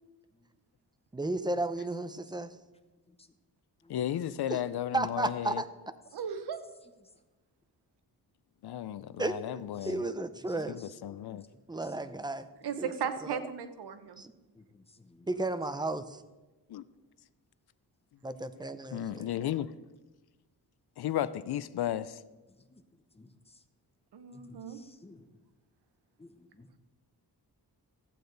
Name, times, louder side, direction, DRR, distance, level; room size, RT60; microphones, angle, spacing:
voice 1, 1.1-2.6 4.5-4.6 4.9-5.7 9.2-9.5 9.9-10.8 11.7-12.5 12.8-12.9 13.3-13.4 14.2-14.3 15.3-16.2 18.2-19.3, right 2 dB, 10° right, 12 dB, 0.6 m, -33 dB
voice 2, 3.9-5.6 8.6-10.0 10.7-11.4 16.7-16.8 18.9-19.7 21.0-22.2, left 11 dB, 75° left, 16 dB, 0.6 m, -34 dB
voice 3, 6.1-6.6 12.6-14.2 24.1-24.8, right 7 dB, 85° right, 10 dB, 1.0 m, -36 dB
voice 4, 24.3-25.2 26.2-26.7, left 2 dB, 15° left, 8 dB, 0.8 m, -54 dB
14.5 x 8.5 x 4.0 m, 1.1 s
wide cardioid pair, 110°, 39 cm